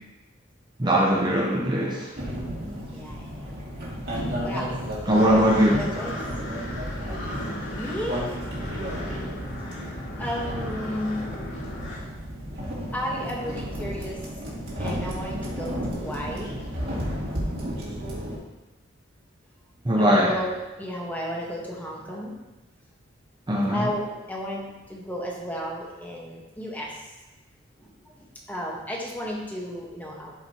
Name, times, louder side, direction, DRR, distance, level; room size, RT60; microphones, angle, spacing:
voice 1, 0.8-2.1 5.1-5.8 19.8-20.3 23.5-23.9, equal, 20° right, -3 dB, 0.8 m, -20 dB
sound 1, 2.1-18.4, equal, 50° right, 2.1 m, -33 dB
voice 2, 2.9-3.6 4.4-4.7 5.6-6.2 7.7-8.2 10.2-11.3 12.9-14.2 14.8-16.6 19.9-20.5 20.8-22.3 23.7-27.1 27.8-27.9 28.2-30.3, equal, 10° left, -3 dB, 1.3 m, -33 dB
sound 2, 5.1-12.0, left 1 dB, 65° left, 2.7 m, -37 dB
12.0 x 5.1 x 2.9 m, 1.1 s
head